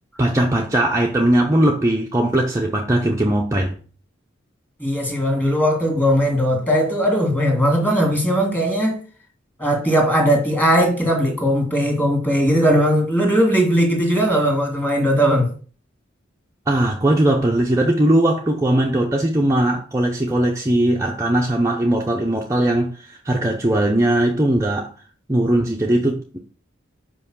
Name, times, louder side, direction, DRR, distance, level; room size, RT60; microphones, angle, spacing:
voice 1, 0.2-3.8 16.7-24.9 25.3-26.4, right 1 dB, 15° right, 0.7 m, -19 dB
voice 2, 4.8-9.0 9.6-15.5, equal, 10° left, 2.1 m, -18 dB
5.6 x 5.4 x 6.2 m
head